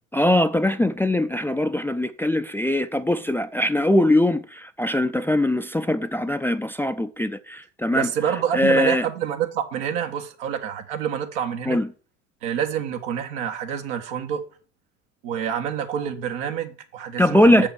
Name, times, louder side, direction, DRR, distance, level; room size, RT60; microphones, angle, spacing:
voice 1, 0.1-8.1 8.5-9.1 11.7-11.9 17.2-17.7, left 1 dB, 5° left, 0.5 m, -21 dB
voice 2, 7.9-11.8 12.4-14.4 15.2-17.7, right 9 dB, 75° right, 1.5 m, -27 dB
7.3 x 5.4 x 6.9 m
hypercardioid pair, 70°, 38 cm